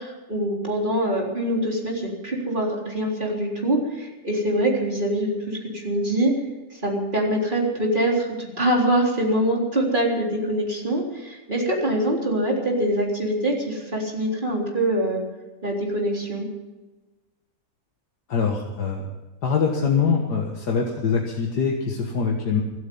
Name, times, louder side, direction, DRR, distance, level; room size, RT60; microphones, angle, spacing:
voice 1, 0.0-6.3 6.8-15.2 15.6-16.5, right 1 dB, 25° right, -1 dB, 3.9 m, -24 dB
voice 2, 18.3-19.1 19.4-22.6, left 5 dB, 70° left, 1 dB, 2.2 m, -23 dB
26.5 x 9.4 x 5.5 m, 1.2 s
omnidirectional pair, 1.8 m